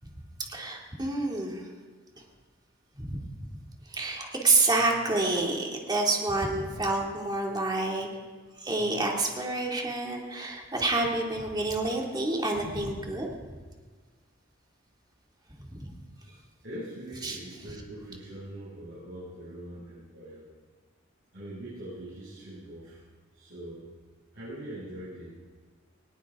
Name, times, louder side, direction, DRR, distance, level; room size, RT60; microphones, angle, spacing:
voice 1, 0.5-1.6 3.0-3.3 3.9-8.1 8.6-13.3 15.7-15.9 17.2-17.4, right 2 dB, 20° right, -1 dB, 2.3 m, -28 dB
voice 2, 16.6-20.4 21.3-23.0 23.3-23.9 24.3-25.3, right 1 dB, 70° right, -11 dB, 6.6 m, -42 dB
19.0 x 18.5 x 3.6 m, 1.5 s
head